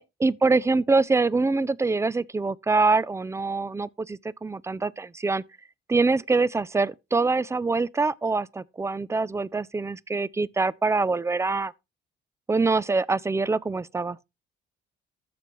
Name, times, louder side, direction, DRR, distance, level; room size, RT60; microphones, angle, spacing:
voice 1, 0.0-5.4 5.9-11.7 12.5-14.2, right 3 dB, 15° right, 0.4 m, -24 dB
13.0 x 6.9 x 3.0 m
cardioid pair, 90°, 20 cm